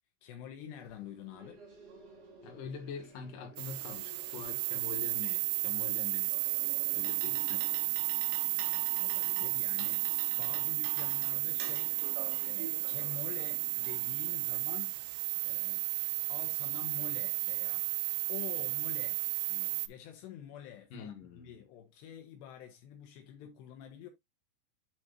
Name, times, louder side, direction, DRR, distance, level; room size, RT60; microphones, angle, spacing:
voice 1, 0.2-1.6 8.5-11.9 12.5-14.9 15.4-15.9 16.3-17.9 18.3-19.2 19.5-24.1, left 9 dB, 80° left, 3.0 m, -48 dB
sound 1, 0.8-7.9, right 4 dB, 40° right, 3.3 m, -55 dB
voice 2, 2.4-6.4 6.9-7.7 20.9-21.6, left 6 dB, 55° left, 2.9 m, -45 dB
sound 2, 3.6-19.9, right 22 dB, 85° right, 3.0 m, -33 dB
sound 3, 6.6-14.6, right 5 dB, 70° right, 3.4 m, -48 dB
8.1 x 6.2 x 2.6 m
omnidirectional pair, 5.1 m